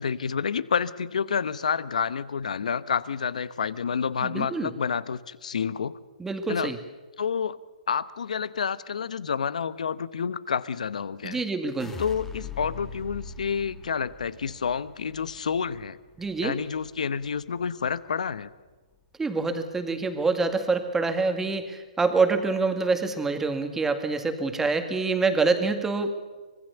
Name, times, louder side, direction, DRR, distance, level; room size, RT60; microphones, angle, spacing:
voice 1, 0.0-5.9 6.5-6.7 7.2-7.6 7.9-11.4 12.0-16.0 16.4-18.5, left 6 dB, 75° left, 16 dB, 1.0 m, -29 dB
voice 2, 4.2-4.7 6.2-6.8 11.2-12.0 16.2-16.6 19.2-26.1, right 4 dB, 10° right, 7 dB, 2.1 m, -26 dB
sound 1, 11.8-18.0 18.3-18.9, left 5 dB, 10° left, 1.9 m, -43 dB
25.0 x 20.5 x 7.0 m, 1.3 s
hypercardioid pair, 135°, 4 cm